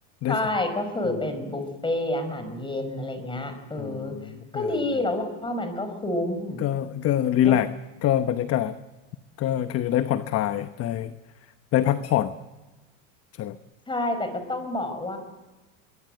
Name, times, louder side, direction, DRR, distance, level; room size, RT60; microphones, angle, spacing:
voice 1, 0.3-4.2 4.5-6.6 7.4-7.6 13.9-15.2, left 2 dB, 10° left, 8 dB, 5.5 m, -28 dB
voice 2, 3.8-4.3 6.6-7.7 8.0-8.8 9.4-11.1 11.7-12.3 13.4-13.6, left 11 dB, 35° left, 11 dB, 1.0 m, -24 dB
23.5 x 22.5 x 7.8 m, 1.1 s
supercardioid pair, 115°, 40 cm